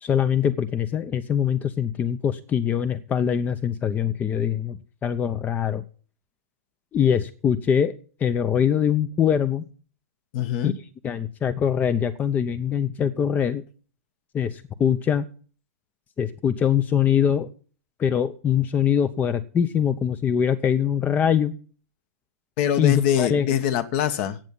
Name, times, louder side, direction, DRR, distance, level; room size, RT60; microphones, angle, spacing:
voice 1, 0.0-5.8 6.9-7.9 8.2-9.6 10.6-10.7 11.0-13.6 14.3-15.2 16.2-17.5 18.0-21.5 22.8-23.5, left 8 dB, 20° left, 0.7 m, -23 dB
voice 2, 10.3-10.8 22.6-24.4, left 10 dB, 45° left, 1.3 m, -23 dB
15.0 x 8.4 x 5.4 m
hypercardioid pair, 125°, 9 cm